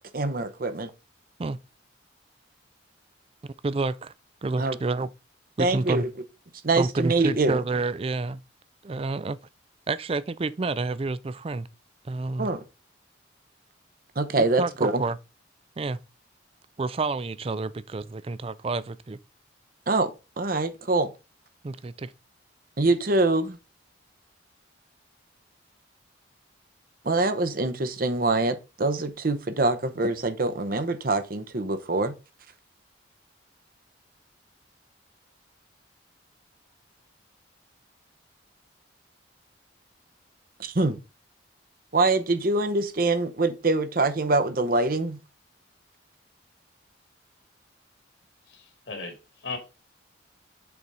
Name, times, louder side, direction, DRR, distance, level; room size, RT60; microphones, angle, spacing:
voice 1, 0.1-0.9 4.6-4.8 5.6-6.1 6.6-7.6 12.4-12.6 14.2-15.0 19.9-20.1 20.4-21.1 22.8-23.6 27.0-32.1 40.6-41.0 41.9-45.2, right 2 dB, 50° right, 0.8 m, -24 dB
voice 2, 3.4-4.1 4.4-5.1 5.6-6.0 6.7-8.4 8.8-9.4 9.9-11.7 12.0-12.5 14.4-15.2 15.8-16.0 16.8-19.2 21.6-22.1, right 3 dB, 30° right, 0.4 m, -29 dB
voice 3, 48.5-49.6, left 4 dB, 65° left, 2.2 m, -37 dB
7.0 x 4.1 x 4.8 m
head